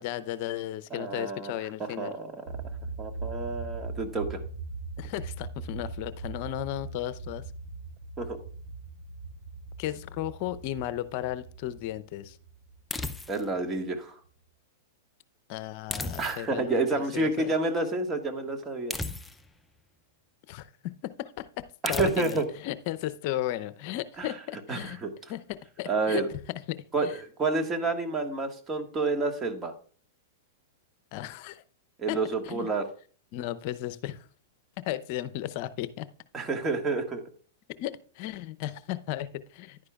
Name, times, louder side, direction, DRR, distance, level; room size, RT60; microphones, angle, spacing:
voice 1, 0.0-2.1 5.0-7.4 9.8-12.4 15.5-17.5 20.5-20.7 21.0-25.0 25.3-26.2 26.7-27.1 31.1-31.6 32.1-32.2 32.5-32.7 33.3-34.3 34.8-36.1 37.8-39.8, left 13 dB, 50° left, 15 dB, 0.6 m, -35 dB
voice 2, 0.9-1.5 2.0-2.3 3.0-4.4 8.2-8.4 13.3-14.2 16.2-18.9 21.8-22.4 24.2-24.3 24.7-25.1 25.9-26.3 26.9-29.7 32.0-32.9 36.3-37.2, right 3 dB, 20° right, 5 dB, 1.6 m, -29 dB
sound 1, 2.5-13.7, right 3 dB, 65° right, 3.6 m, -40 dB
sound 2, 12.9-13.6 15.9-16.7 18.9-19.6 21.9-22.5, left 2 dB, 5° left, 0.5 m, -35 dB
11.0 x 9.6 x 2.4 m, 0.42 s
hypercardioid pair, 120°, 0 cm